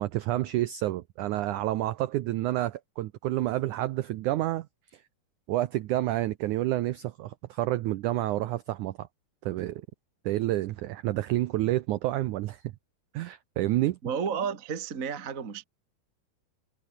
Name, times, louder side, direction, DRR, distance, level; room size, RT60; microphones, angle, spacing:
voice 1, 0.0-4.7 4.9-5.0 5.5-9.1 9.4-9.8 10.3-12.6 13.1-14.0, right 15 dB, 80° right, 1.8 m, -29 dB
voice 2, 14.0-15.6, right 6 dB, 30° right, 1.6 m, -32 dB
omnidirectional pair, 4.4 m